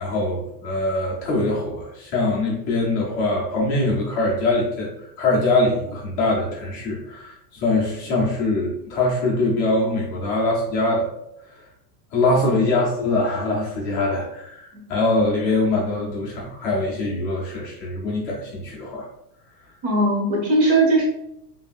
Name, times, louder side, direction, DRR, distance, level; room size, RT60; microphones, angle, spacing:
voice 1, 0.0-11.1 12.1-19.1, left 2 dB, 25° left, -4 dB, 0.5 m, -23 dB
voice 2, 19.8-21.0, right 2 dB, 40° right, -2 dB, 1.4 m, -19 dB
5.5 x 2.7 x 2.4 m, 0.79 s
supercardioid pair, 180°, 48 cm